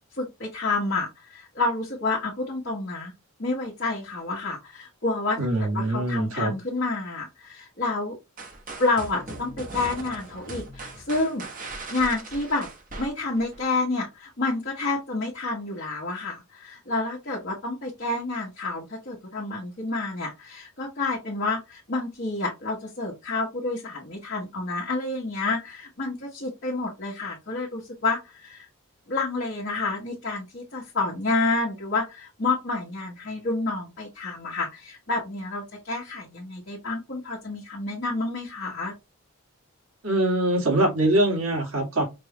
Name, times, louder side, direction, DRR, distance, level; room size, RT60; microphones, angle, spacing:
voice 1, 0.2-3.1 3.4-5.4 5.7-8.2 8.8-11.4 11.9-12.7 13.0-28.7 29.1-38.9, left 3 dB, 55° left, 1.1 m, -29 dB
voice 2, 5.4-6.5 40.0-42.0, right 1 dB, 75° right, 1.8 m, -23 dB
sound 1, 8.4-13.6, right 2 dB, 40° right, 1.0 m, -39 dB
5.3 x 2.3 x 2.9 m
head